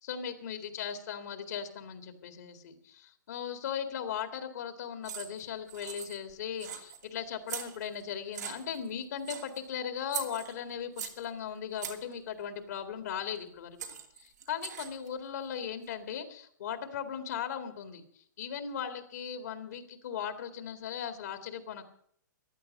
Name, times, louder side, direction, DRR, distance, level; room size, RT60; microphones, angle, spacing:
voice 1, 0.1-13.8 14.2-18.0 18.4-21.8, left 8 dB, 60° left, 8 dB, 2.1 m, -38 dB
sound 1, 5.0-5.4 5.7-6.3 6.6-7.0 7.5-8.0 8.3-8.9 9.2-9.6 10.1-11.3 11.8-12.1 13.4-13.5 13.8-15.1, right 8 dB, 60° right, 2.6 m, -41 dB
15.0 x 11.0 x 6.5 m, 0.63 s
figure-of-eight pair, 120°, 10 cm